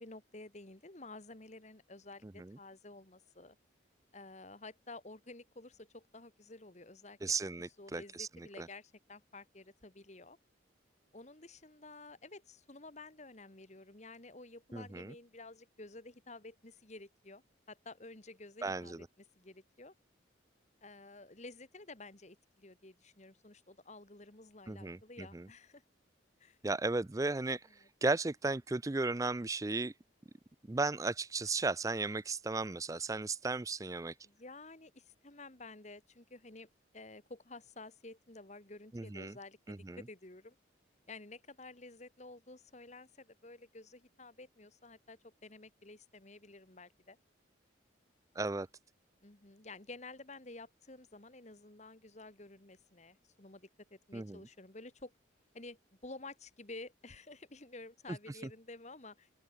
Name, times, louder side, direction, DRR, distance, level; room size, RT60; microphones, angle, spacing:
voice 1, 0.0-3.6 4.1-7.2 7.8-10.4 11.1-17.4 17.7-19.0 19.4-19.9 20.8-25.8 26.4-26.6 27.8-27.9 34.2-36.7 36.9-40.6 41.1-47.2 49.2-55.1 55.5-59.3, left 2 dB, 35° left, 1.9 m, -52 dB
voice 2, 7.2-8.7 14.7-15.1 18.6-19.0 24.7-25.0 25.3-25.5 26.6-29.9 30.7-34.1 38.9-39.3 39.7-40.0 48.4-48.7 54.1-54.4, right 3 dB, 15° right, 0.4 m, -35 dB
open air
head